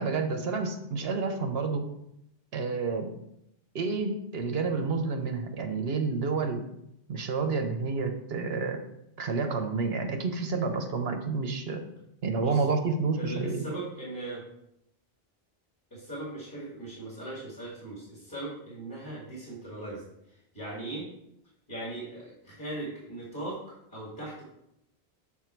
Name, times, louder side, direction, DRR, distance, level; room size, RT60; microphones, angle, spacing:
voice 1, 0.0-1.9 2.5-3.1 3.7-6.6 7.1-8.8 9.2-11.8 12.2-13.6, right 4 dB, 70° right, 6 dB, 1.0 m, -29 dB
voice 2, 12.3-12.6 13.1-14.4 15.9-21.1 21.7-24.4, right 2 dB, 20° left, -7 dB, 2.2 m, -39 dB
7.3 x 3.6 x 4.5 m, 0.80 s
omnidirectional pair, 1.1 m